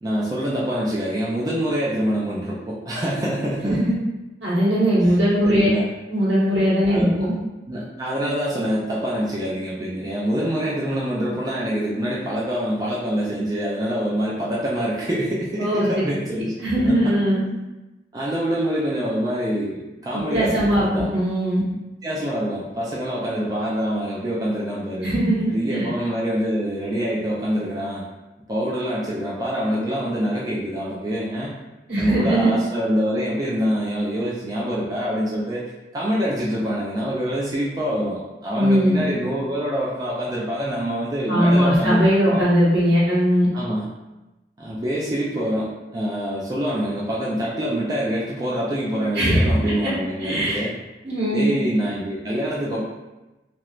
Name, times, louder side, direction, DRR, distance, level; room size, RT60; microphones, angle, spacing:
voice 1, 0.0-3.9 5.0-5.1 5.4-5.9 6.9-7.1 7.7-16.5 16.8-17.1 18.1-21.1 22.0-25.1 25.5-28.1 28.5-31.6 32.0-35.6 35.9-42.4 43.5-43.9 44.6-50.7 51.3-52.8, equal, 20° right, -6 dB, 0.3 m, -25 dB
voice 2, 3.6-3.9 4.4-5.7 6.1-7.3 15.6-15.9 16.6-17.4 20.1-21.6 25.0-25.9 31.9-32.5 38.5-39.0 41.3-43.5 49.1-49.4 49.8-49.9 50.2-50.6 51.0-51.6, equal, 75° right, -10 dB, 1.4 m, -19 dB
2.9 x 2.0 x 2.4 m, 1.0 s
head